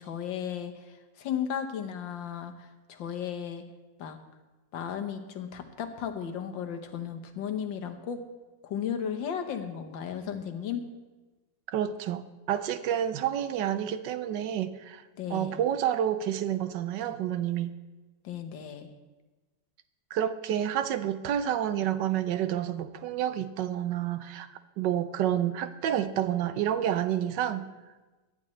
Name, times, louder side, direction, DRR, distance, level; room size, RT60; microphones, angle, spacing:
voice 1, 0.0-3.6 4.0-4.2 4.7-8.2 8.6-10.9 15.2-15.6 18.2-18.9, left 8 dB, 85° left, 6 dB, 1.8 m, -35 dB
voice 2, 11.7-12.2 12.5-15.0 15.3-17.7 20.1-24.5 24.8-27.7, right 10 dB, 75° right, 12 dB, 1.3 m, -29 dB
17.5 x 11.5 x 3.2 m, 1.2 s
omnidirectional pair, 2.0 m